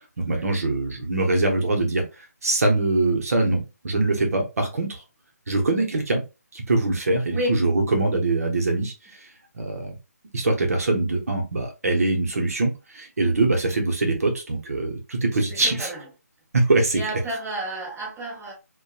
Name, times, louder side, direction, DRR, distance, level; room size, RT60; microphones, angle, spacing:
voice 1, 0.2-5.0 5.5-6.2 6.5-10.0 10.3-15.9 16.5-17.0, right 2 dB, 60° right, 0.8 m, -23 dB
voice 2, 7.2-7.5 13.2-13.4 15.3-16.1 16.9-18.5, right 1 dB, 10° right, 1.0 m, -31 dB
2.8 x 2.2 x 2.3 m
hypercardioid pair, 170°, 9 cm